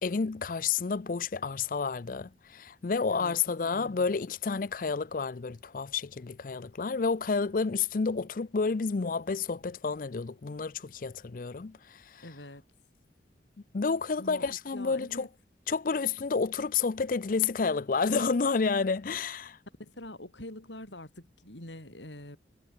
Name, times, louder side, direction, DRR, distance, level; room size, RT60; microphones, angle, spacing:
voice 1, 0.0-12.2 13.7-15.3 15.7-19.6, left 5 dB, 50° left, 0.5 m, -30 dB
voice 2, 3.6-4.1 12.2-12.6 14.2-15.3 19.8-22.4, left 1 dB, 80° left, 6.3 m, -45 dB
head